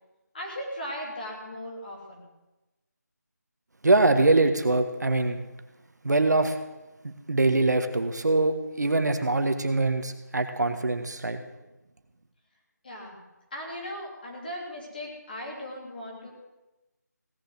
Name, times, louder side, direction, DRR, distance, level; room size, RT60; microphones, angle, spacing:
voice 1, 0.3-2.2 12.8-13.2 13.5-16.3, equal, 30° left, -1 dB, 3.1 m, -37 dB
voice 2, 3.8-5.4 6.0-6.6 7.3-11.4, right 2 dB, 70° right, 7 dB, 1.5 m, -23 dB
17.0 x 6.8 x 7.9 m, 1.0 s
figure-of-eight pair, 170°, 10 cm